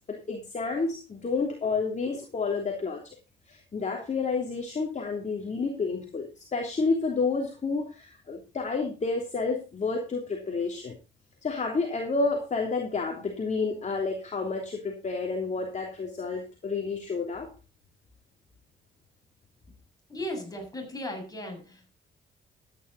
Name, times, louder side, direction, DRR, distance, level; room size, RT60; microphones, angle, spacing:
voice 1, 0.1-3.1 3.5-11.0 11.4-17.5, left 4 dB, 35° left, 2 dB, 3.2 m, -30 dB
voice 2, 20.1-21.9, left 1 dB, 20° left, 2 dB, 7.3 m, -36 dB
13.5 x 10.0 x 4.0 m, 0.30 s
cardioid pair, 90°, 20 cm